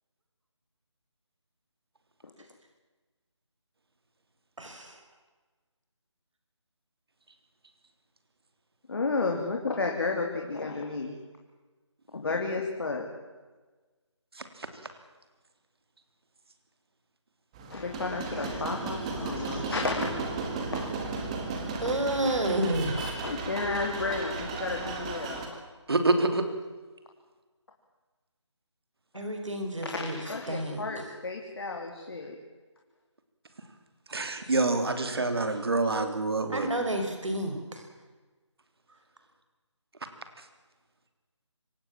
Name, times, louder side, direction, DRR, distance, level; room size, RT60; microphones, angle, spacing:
voice 1, 4.6-5.0 21.8-23.0 29.1-30.2 30.5-31.0 36.5-37.8, right 1 dB, 85° right, 4 dB, 5.5 m, -30 dB
voice 2, 8.9-11.1 12.1-13.1 17.7-20.2 20.7-20.9 23.2-25.5 29.8-32.4, left 3 dB, 50° left, 1 dB, 3.2 m, -32 dB
sound 1, 17.5-25.5, right 4 dB, 15° right, 1.9 m, -35 dB
voice 3, 25.9-26.4 34.1-36.7, right 2 dB, 55° right, 8 dB, 3.0 m, -26 dB
25.5 x 18.0 x 7.5 m, 1.3 s
figure-of-eight pair, 170°, 16 cm